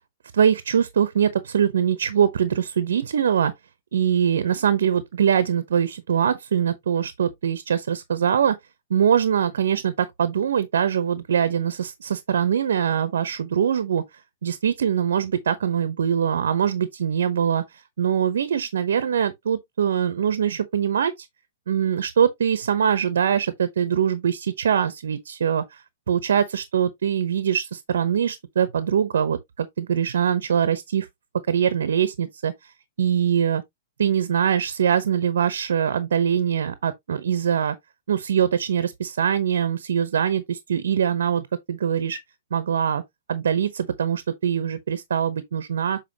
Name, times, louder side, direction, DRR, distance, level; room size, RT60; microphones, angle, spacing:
voice 1, 0.3-3.5 3.9-8.6 8.9-14.0 14.4-21.3 21.7-31.1 31.5-32.5 33.0-33.6 34.0-37.8 38.1-42.2 42.5-43.0 43.3-46.0, right 8 dB, 80° right, 0.9 m, -23 dB
7.6 x 4.4 x 2.9 m
hypercardioid pair, 160°, 0 cm